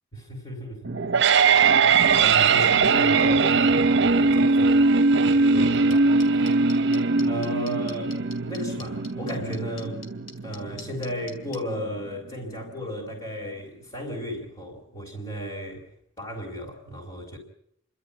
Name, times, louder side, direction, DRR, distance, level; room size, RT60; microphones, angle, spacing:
voice 1, 0.1-0.9 1.3-1.7 2.1-4.9 5.2-6.6 7.3-8.2 8.4-10.1 10.4-15.9 16.2-17.4, equal, 25° left, 4.4 m, -34 dB
sound 1, 0.9-11.9, right 4 dB, 60° right, 0.8 m, -21 dB
sound 2, 5.9-11.6, left 4 dB, 70° left, 4.0 m, -42 dB
29.0 x 13.0 x 8.7 m
head